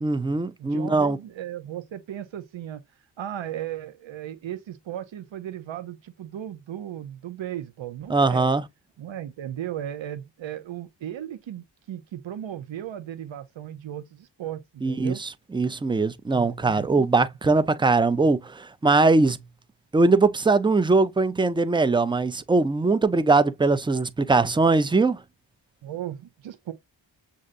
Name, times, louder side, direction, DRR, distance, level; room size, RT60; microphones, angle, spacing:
voice 1, 0.0-1.2 8.1-8.6 14.8-19.4 19.9-25.2, right 3 dB, 10° right, 0.4 m, -21 dB
voice 2, 0.6-2.8 3.2-8.5 9.0-15.2 16.3-17.1 25.8-26.7, right 11 dB, 75° right, 0.7 m, -36 dB
6.4 x 2.6 x 2.5 m
cardioid pair, 45°, 46 cm